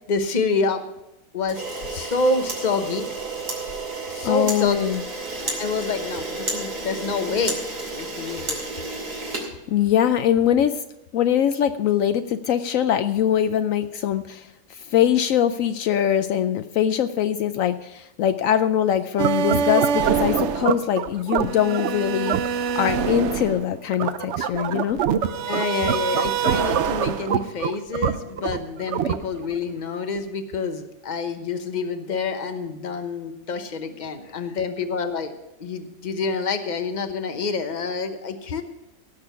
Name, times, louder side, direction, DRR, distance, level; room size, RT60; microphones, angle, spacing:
voice 1, 0.1-0.8 1.3-1.6 1.9-3.1 4.1-4.8 5.4-7.6 7.9-8.6 25.4-35.3 35.6-38.6, left 4 dB, 35° left, 7 dB, 0.8 m, -27 dB
Camera, 1.4-10.2, right 2 dB, 55° right, 3.2 m, -31 dB
voice 2, 4.2-5.0 9.7-10.8 11.1-25.0, left 10 dB, 85° left, 10 dB, 0.7 m, -22 dB
sound 1, 19.2-29.6, right 8 dB, 80° right, 0.6 m, -24 dB
17.5 x 6.7 x 5.8 m, 0.92 s
omnidirectional pair, 2.0 m